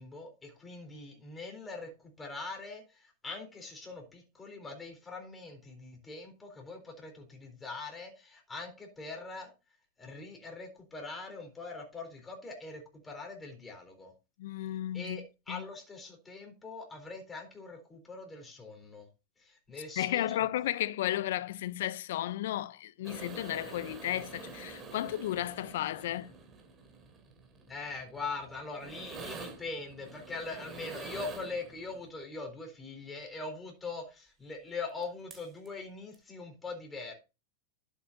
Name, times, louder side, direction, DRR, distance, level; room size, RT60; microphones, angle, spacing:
voice 1, 0.0-9.5 10.0-14.1 14.9-19.1 19.4-20.4 27.7-37.2, left 3 dB, 15° left, 3.8 m, -42 dB
voice 2, 14.4-15.2 15.5-15.6 20.0-26.3, left 13 dB, 75° left, 0.6 m, -33 dB
sound 1, 23.0-32.1 35.0-35.1 35.3-35.7 36.1-36.2, right 4 dB, 20° right, 3.2 m, -47 dB
11.0 x 8.2 x 2.7 m
supercardioid pair, 130°, 0 cm